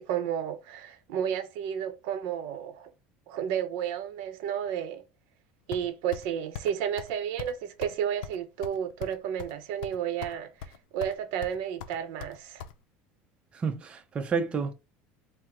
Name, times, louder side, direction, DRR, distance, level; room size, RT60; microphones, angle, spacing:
voice 1, 0.0-2.9 3.3-5.0 5.7-12.6, right 9 dB, 75° right, 0.7 m, -32 dB
sound 1, 5.7-6.3 6.5-6.7 7.0-7.1 7.4-7.5 7.8-7.9 8.2-9.5 9.8-10.4 10.6-11.2 11.4-12.7, left 8 dB, 85° left, 0.5 m, -40 dB
voice 2, 13.5-14.7, right 5 dB, 25° right, 0.5 m, -30 dB
4.4 x 2.0 x 3.7 m
cardioid pair, 140°, 4 cm